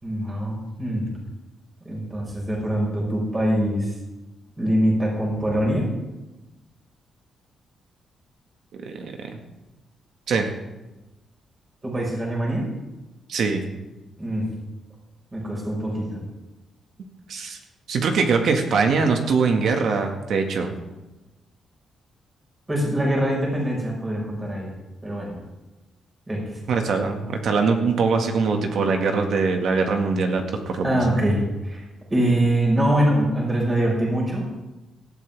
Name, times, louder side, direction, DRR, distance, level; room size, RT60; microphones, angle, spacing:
voice 1, 0.0-1.1 1.8-3.9 4.6-5.9 11.8-12.7 14.2-14.5 15.3-16.2 22.7-24.7 25.0-25.4 26.3-26.4 30.8-31.8 32.1-34.5, right 1 dB, 20° right, -2 dB, 5.2 m, -23 dB
voice 2, 8.8-9.4 10.3-10.5 13.3-13.6 17.3-17.6 17.9-20.7 26.7-31.0, right 4 dB, 65° right, 4 dB, 1.9 m, -22 dB
18.5 x 13.0 x 3.6 m, 1.1 s
cardioid pair, 135°, 0 cm